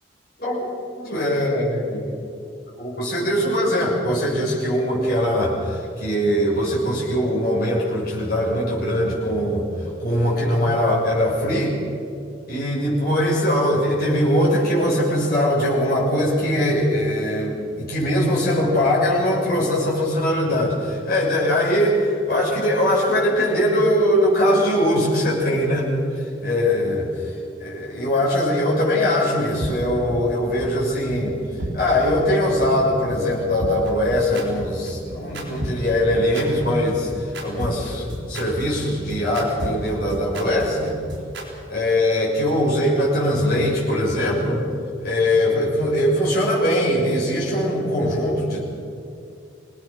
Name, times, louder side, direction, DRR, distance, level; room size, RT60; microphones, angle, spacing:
voice 1, 1.0-2.1 2.8-11.8 12.5-25.9 26.4-31.4 31.7-41.0 41.7-44.7 45.0-48.6, left 1 dB, 50° left, -5 dB, 6.6 m, -21 dB
sound 1, 29.6-29.7 30.1-30.2 30.6-30.7 31.1-31.2 31.6-31.7 32.1-32.2 32.6-32.7 33.1-33.2 33.6-41.4, equal, 70° right, 4.3 m, -31 dB
25.0 x 19.0 x 6.2 m, 2.5 s
head